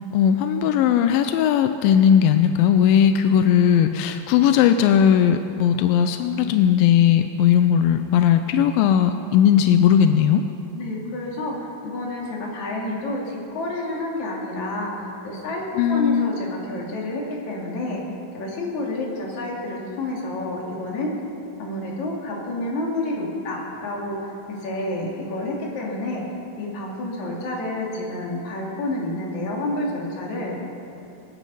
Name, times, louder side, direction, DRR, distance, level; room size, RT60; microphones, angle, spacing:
voice 1, 0.1-10.4 15.8-16.3, left 9 dB, 90° left, 8 dB, 2.4 m, -18 dB
voice 2, 10.7-18.0 18.3-21.1 21.6-26.2 26.6-30.6, left 1 dB, 55° left, -3 dB, 3.8 m, -29 dB
25.0 x 9.2 x 5.6 m, 2.8 s
omnidirectional pair, 4.1 m